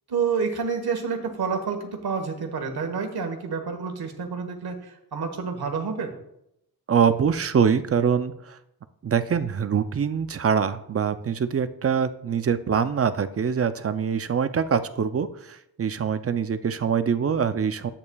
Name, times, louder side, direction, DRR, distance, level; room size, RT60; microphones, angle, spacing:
voice 1, 0.1-6.1, right 5 dB, 85° right, 5 dB, 1.3 m, -29 dB
voice 2, 6.9-8.6 9.0-17.9, right 7 dB, 40° right, 11 dB, 0.4 m, -24 dB
11.0 x 8.6 x 2.3 m, 0.80 s
wide cardioid pair, 155°, 37 cm